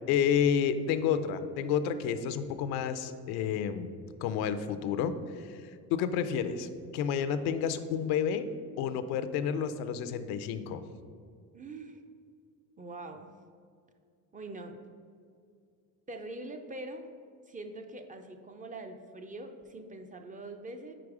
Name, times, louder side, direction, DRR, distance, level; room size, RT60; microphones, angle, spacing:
voice 1, 0.1-3.9 4.2-5.6 5.9-8.5 8.8-10.8, left 8 dB, 80° left, 11 dB, 0.5 m, -30 dB
voice 2, 11.5-12.0 12.8-13.3 14.3-14.8 16.1-17.0 17.5-20.9, right 2 dB, 20° right, 6 dB, 0.4 m, -43 dB
5.0 x 4.6 x 4.8 m, 2.2 s
supercardioid pair, 95°, 37 cm